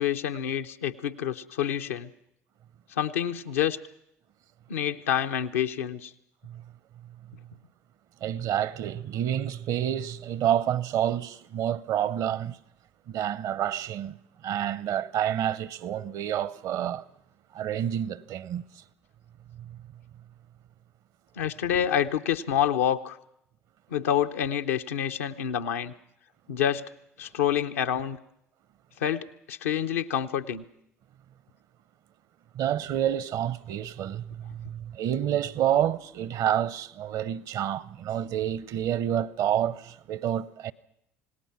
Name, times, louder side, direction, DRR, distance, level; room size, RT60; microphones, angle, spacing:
voice 1, 0.0-2.1 3.0-3.8 4.7-6.1 21.4-23.2 23.9-25.9 26.5-26.8 27.2-28.2 29.0-30.6, left 9 dB, 80° left, 0.8 m, -27 dB
voice 2, 8.2-12.6 13.1-14.2 14.4-17.0 17.5-18.7 19.6-19.8 32.5-40.7, right 10 dB, 60° right, 0.8 m, -28 dB
27.0 x 18.5 x 5.9 m
hypercardioid pair, 60°, 7 cm